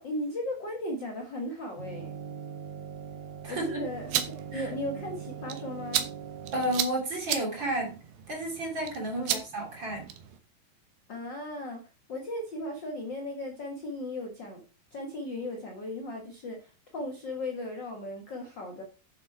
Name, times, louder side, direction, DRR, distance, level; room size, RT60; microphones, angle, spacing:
voice 1, 0.0-2.1 3.5-6.0 9.2-9.4 11.1-11.8 12.1-14.6 14.9-18.8, left 1 dB, 45° left, 2 dB, 1.5 m, -36 dB
sound 1, 1.8-6.8, right 7 dB, 65° right, 2.1 m, -41 dB
voice 2, 3.4-3.8 4.5-4.7 6.5-8.0 8.3-10.1, right 1 dB, 35° right, 0 dB, 3.0 m, -32 dB
sound 2, 3.9-10.4, right 10 dB, 85° right, 2.9 m, -36 dB
9.5 x 7.2 x 4.5 m, 0.34 s
omnidirectional pair, 4.1 m